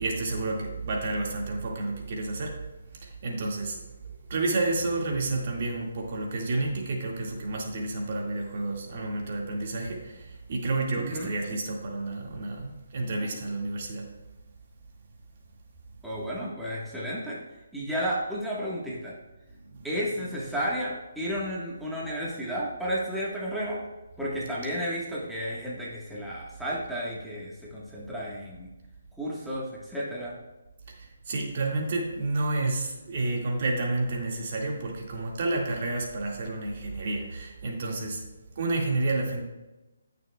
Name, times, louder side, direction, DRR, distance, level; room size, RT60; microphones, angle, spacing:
voice 1, 0.0-2.6 3.0-3.8 4.3-14.1 19.7-19.9 31.0-39.4, right 2 dB, 45° right, 0 dB, 2.0 m, -30 dB
voice 2, 11.0-11.3 16.0-17.4 17.7-19.1 19.8-23.8 24.2-28.7 29.2-30.3, equal, ahead, -7 dB, 1.4 m, -32 dB
15.5 x 6.6 x 2.3 m, 1.1 s
hypercardioid pair, 155°, 0 cm